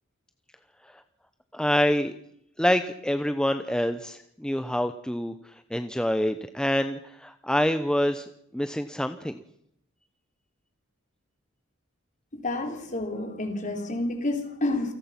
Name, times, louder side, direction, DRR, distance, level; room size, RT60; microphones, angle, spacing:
voice 1, 1.5-2.1 2.6-5.3 5.7-9.4, equal, 5° left, 9 dB, 0.9 m, -26 dB
voice 2, 12.3-14.9, left 2 dB, 40° left, 5 dB, 4.0 m, -29 dB
28.5 x 18.5 x 6.0 m, 0.73 s
head